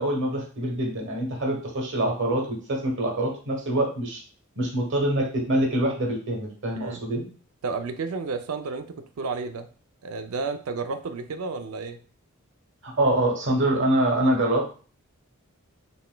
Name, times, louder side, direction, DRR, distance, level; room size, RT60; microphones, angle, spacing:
voice 1, 0.0-4.2 4.6-7.2 12.8-14.7, right 1 dB, 60° right, 1 dB, 1.1 m, -25 dB
voice 2, 7.6-8.9 9.2-9.7 10.0-12.0, right 4 dB, 80° right, 8 dB, 0.4 m, -31 dB
4.1 x 3.3 x 2.2 m, 0.40 s
head